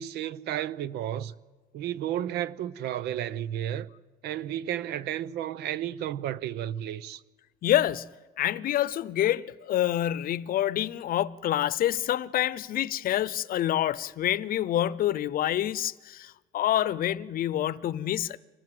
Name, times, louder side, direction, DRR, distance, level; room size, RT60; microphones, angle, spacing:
voice 1, 0.0-1.3 1.7-3.9 4.2-7.2, right 11 dB, 80° right, 0.8 m, -32 dB
voice 2, 7.6-8.1 8.4-18.4, left 12 dB, 60° left, 0.7 m, -27 dB
24.5 x 18.5 x 7.7 m
cardioid pair, 110°, 17 cm